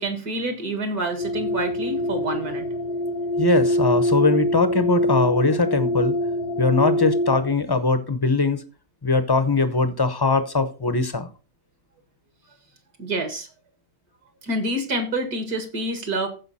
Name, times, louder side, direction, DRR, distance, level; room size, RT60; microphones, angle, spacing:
voice 1, 0.0-2.7 13.0-13.5 14.4-16.3, right 1 dB, 70° right, 2.4 m, -27 dB
sound 1, 1.2-7.5, left 1 dB, 85° left, 1.6 m, -24 dB
voice 2, 3.4-6.1 6.6-8.6 9.0-11.3, left 3 dB, 25° left, 0.5 m, -21 dB
14.5 x 5.1 x 4.2 m
omnidirectional pair, 1.7 m